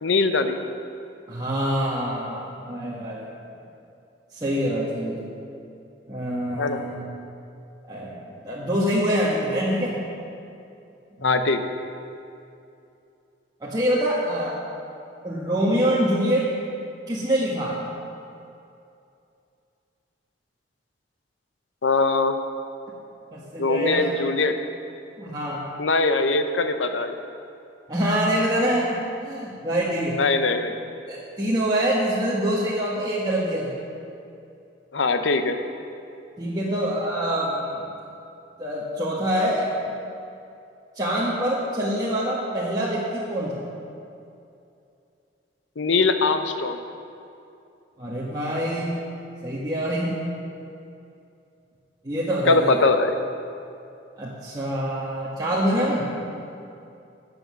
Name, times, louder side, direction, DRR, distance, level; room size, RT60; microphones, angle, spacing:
voice 1, 0.0-0.6 6.6-6.8 11.2-11.7 21.8-22.4 23.6-24.5 25.8-27.1 30.2-30.8 34.9-35.6 45.8-46.8 52.5-53.1, left 3 dB, 90° left, 8 dB, 0.7 m, -21 dB
voice 2, 1.3-3.4 4.3-5.2 6.1-7.1 7.9-8.2 8.4-9.9 11.2-11.5 13.6-14.6 15.2-16.4 17.1-17.7 23.3-24.0 25.2-25.6 27.9-29.0 29.2-30.2 31.1-33.8 36.4-37.9 38.6-39.7 40.9-43.5 48.0-49.1 49.4-50.2 52.0-52.8 54.2-56.1, equal, 20° right, -7 dB, 1.3 m, -25 dB
11.0 x 7.9 x 6.2 m, 2.6 s
head